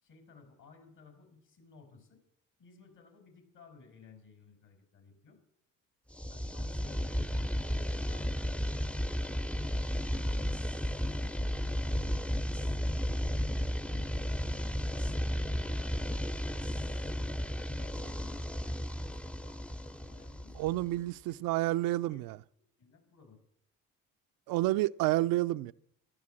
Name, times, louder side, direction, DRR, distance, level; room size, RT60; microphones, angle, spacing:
voice 1, 0.0-2.2 2.6-5.4 6.3-7.3 7.7-10.6 10.9-13.3 13.8-15.0 15.4-17.0 17.7-20.7 21.3-21.4 21.7-22.3 22.8-23.4, left 4 dB, 60° left, 4.9 m, -58 dB
sound 1, 6.1-21.0, equal, 5° left, 0.5 m, -33 dB
voice 2, 20.5-22.4 24.5-25.7, right 16 dB, 75° right, 0.5 m, -29 dB
14.0 x 11.5 x 7.5 m
supercardioid pair, 70°, 35 cm